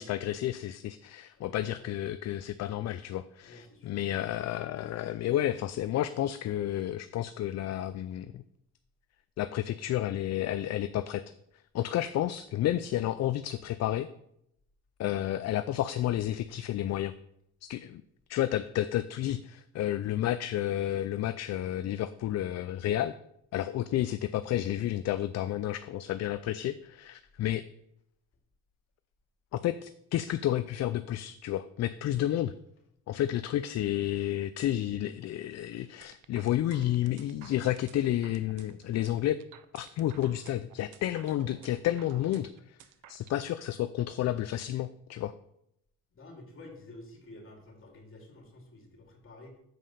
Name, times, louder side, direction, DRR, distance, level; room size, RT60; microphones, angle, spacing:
voice 1, 0.0-8.4 9.4-11.2 11.7-14.1 15.0-17.1 17.6-18.0 18.3-23.2 23.5-27.6 29.5-32.5 33.1-39.4 39.7-42.8 43.1-45.3, left 12 dB, 60° left, 12 dB, 0.4 m, -31 dB
voice 2, 1.3-1.9 3.4-4.0 17.8-17.9 46.1-49.6, left 2 dB, 45° left, 1 dB, 2.8 m, -50 dB
sound 1, 36.0-43.4, right 11 dB, 90° right, 0.7 m, -54 dB
7.7 x 5.1 x 5.6 m, 0.75 s
cardioid pair, 90°, 30 cm